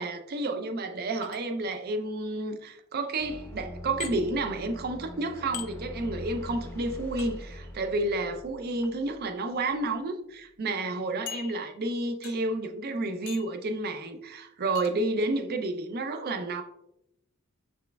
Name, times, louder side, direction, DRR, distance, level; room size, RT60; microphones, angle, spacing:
voice 1, 0.0-16.6, right 2 dB, 45° right, 0.4 m, -31 dB
sound 1, 1.2-1.8 4.0-4.1 5.5-5.7 7.2-7.3 8.6-8.9 9.7-9.8 10.1-10.2 11.3-11.9 12.2-12.6 13.3-13.6 14.7-14.9, left 11 dB, 60° left, 0.4 m, -41 dB
sound 2, 3.2-9.9, equal, 10° left, 0.6 m, -43 dB
6.1 x 3.2 x 2.2 m
head